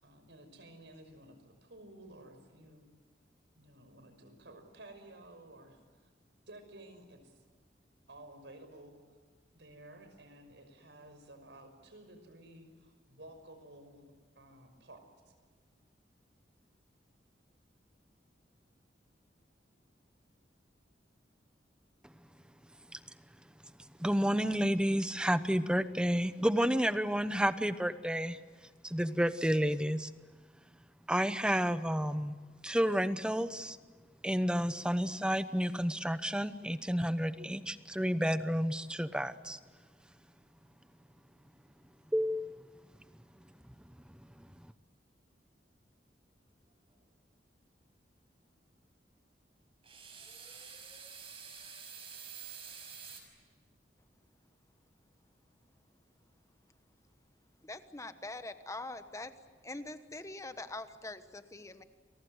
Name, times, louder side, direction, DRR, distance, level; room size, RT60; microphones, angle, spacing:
voice 1, 0.0-2.9 3.5-6.1 6.5-7.4 8.1-9.0 9.5-14.1 14.4-15.3, right 1 dB, 80° right, 7 dB, 5.8 m, -54 dB
voice 2, 24.0-28.4 28.8-30.1 31.1-32.4 32.6-33.8 34.2-39.6 42.1-42.7 44.4-44.5, equal, 5° right, 12 dB, 0.9 m, -30 dB
sound 1, 49.8-53.2, right 6 dB, 30° right, 6.3 m, -48 dB
voice 3, 57.6-59.3 59.6-61.8, left 2 dB, 15° left, 10 dB, 1.2 m, -43 dB
29.5 x 23.0 x 8.0 m, 1.5 s
head